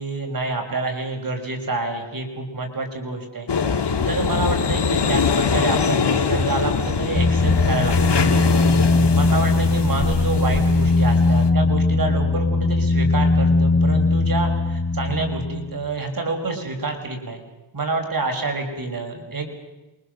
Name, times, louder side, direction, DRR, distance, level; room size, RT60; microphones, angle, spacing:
voice 1, 0.0-3.5 3.8-8.7 8.9-17.4 17.7-19.5, right 3 dB, 50° right, 3 dB, 5.2 m, -28 dB
sound 1, 3.5-11.5, left 5 dB, 70° left, 2.2 m, -23 dB
sound 2, 7.2-15.8, left 3 dB, 25° left, 5.0 m, -19 dB
27.5 x 24.0 x 6.6 m, 1.1 s
wide cardioid pair, 80°, 43 cm